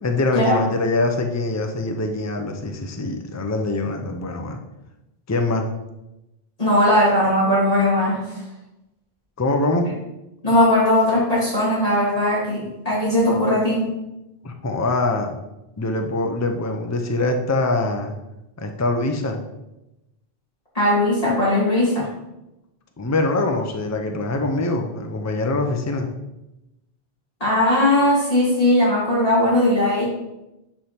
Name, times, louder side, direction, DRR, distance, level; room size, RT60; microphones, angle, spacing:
voice 1, 0.0-4.6 5.3-5.7 9.4-9.9 14.4-15.3 15.8-18.2 18.6-19.4 23.0-26.1, left 2 dB, 20° left, 4 dB, 0.6 m, -23 dB
voice 2, 6.6-8.4 10.4-13.8 20.7-22.1 27.4-30.0, left 1 dB, 35° left, -9 dB, 2.5 m, -19 dB
10.5 x 3.5 x 4.4 m, 0.94 s
omnidirectional pair, 1.0 m